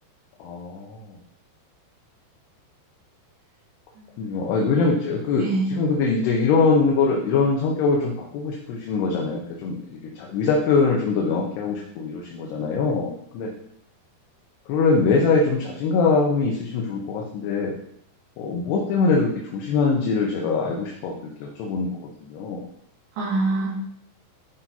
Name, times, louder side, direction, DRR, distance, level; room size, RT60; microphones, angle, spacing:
voice 1, 0.4-1.2 4.2-13.5 14.7-17.7 18.4-21.1 21.4-22.6, left 4 dB, 75° left, -1 dB, 2.9 m, -23 dB
voice 2, 4.0-4.6 5.4-5.7 23.2-23.7, right 3 dB, 80° right, -9 dB, 4.5 m, -26 dB
12.0 x 5.7 x 2.9 m, 0.70 s
omnidirectional pair, 5.0 m